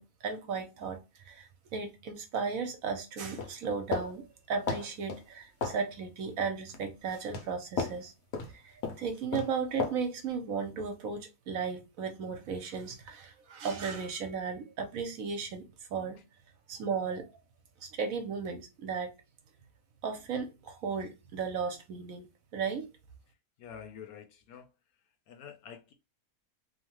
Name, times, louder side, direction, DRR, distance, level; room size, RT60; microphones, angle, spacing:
voice 1, 0.0-8.1 8.5-16.2 16.7-17.3 17.8-19.1 20.0-22.9, right 5 dB, 65° right, 1.0 m, -35 dB
sound 1, 3.4-4.1 4.7-5.2 5.6-5.8 6.6-6.8 7.3-7.5 7.8-8.0 8.3-8.5 8.8-9.0 9.3-9.5 9.8-10.0, left 4 dB, 90° left, 1.2 m, -33 dB
voice 2, 23.6-24.7 25.3-25.9, left 8 dB, 75° left, 1.0 m, -47 dB
2.9 x 2.1 x 2.9 m
omnidirectional pair, 1.7 m